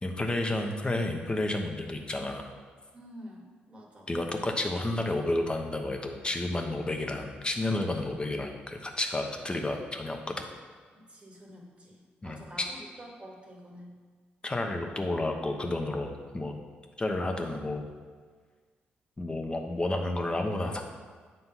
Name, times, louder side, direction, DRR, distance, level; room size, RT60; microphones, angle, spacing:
voice 1, 0.0-2.5 4.1-10.2 12.2-12.7 14.4-16.5 17.0-17.9 19.2-20.8, left 2 dB, 25° left, 3 dB, 1.0 m, -31 dB
voice 2, 2.9-4.1 10.9-14.0, equal, 30° right, -1 dB, 1.9 m, -48 dB
7.8 x 3.9 x 5.9 m, 1.6 s
supercardioid pair, 65°, 4 cm